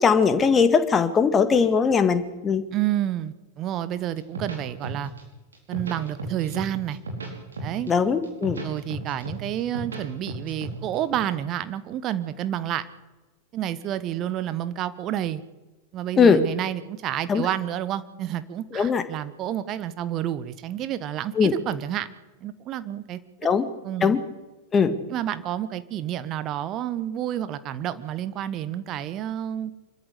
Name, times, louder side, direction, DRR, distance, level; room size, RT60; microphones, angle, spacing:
voice 1, 0.0-2.6 7.9-8.6 16.2-16.4 17.3-17.4 18.7-19.0 21.4-21.5 23.4-23.7 24.0-24.2 24.7-25.0, left 6 dB, 20° left, 10 dB, 2.0 m, -20 dB
voice 2, 2.7-5.1 5.7-7.0 7.6-7.9 8.6-12.8 13.5-15.4 15.9-22.1 22.4-23.2 23.6-24.2 25.1-29.7, right 11 dB, 35° right, 14 dB, 1.4 m, -29 dB
sound 1, 4.2-5.2 5.5-6.7 6.9-7.9 8.2-10.0 10.3-11.2, right 2 dB, 70° right, 5.3 m, -34 dB
25.0 x 14.0 x 8.3 m, 1.2 s
figure-of-eight pair, 90°, 0 cm